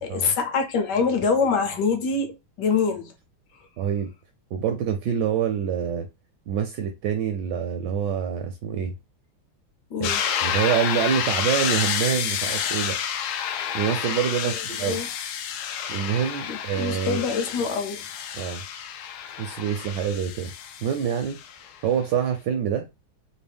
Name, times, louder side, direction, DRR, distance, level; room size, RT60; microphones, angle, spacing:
voice 1, 0.0-3.1 9.9-10.2 14.9-15.1 16.5-18.1, left 5 dB, 65° left, 1.2 m, -25 dB
voice 2, 3.8-4.1 4.5-6.1 6.5-8.9 10.0-10.1 10.4-13.0 13.7-15.0 15.9-17.2 18.3-18.6 19.4-20.5 20.8-21.4 21.8-22.9, right 8 dB, 75° right, 1.0 m, -26 dB
sound 1, 10.0-21.7, left 8 dB, 90° left, 0.8 m, -29 dB
3.5 x 2.7 x 3.4 m
omnidirectional pair, 2.3 m